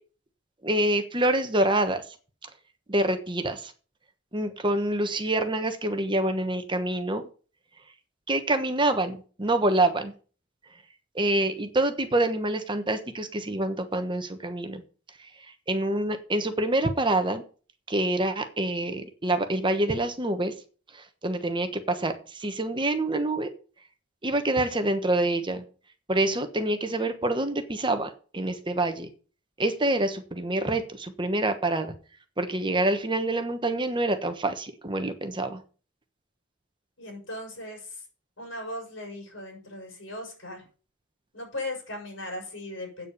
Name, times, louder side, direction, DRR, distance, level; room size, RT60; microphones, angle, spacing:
voice 1, 0.6-2.0 2.9-3.7 4.3-7.2 8.3-10.1 11.1-14.8 15.2-15.3 15.7-17.4 17.9-20.5 20.9-23.5 24.2-25.6 26.1-29.1 29.6-31.9 32.4-35.6, right 1 dB, 25° right, 8 dB, 1.2 m, -26 dB
voice 2, 37.0-38.0 38.4-40.6 41.3-43.1, left 1 dB, 75° left, 2 dB, 6.1 m, -38 dB
8.7 x 7.4 x 6.7 m, 0.38 s
head